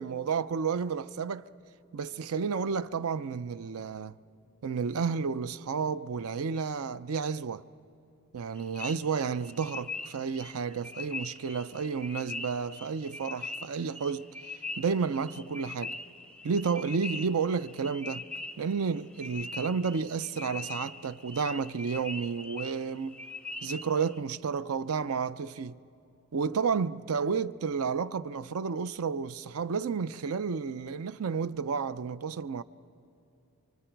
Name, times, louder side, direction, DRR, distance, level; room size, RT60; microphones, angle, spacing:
voice 1, 0.0-1.5 1.9-4.1 4.6-7.6 8.3-14.3 14.8-15.9 16.4-18.2 18.6-23.2 23.6-25.8 26.3-32.6, right 5 dB, 70° right, 0.5 m, -31 dB
sound 1, 8.6-24.2, left 3 dB, 5° left, 0.5 m, -42 dB
28.5 x 24.5 x 4.6 m
head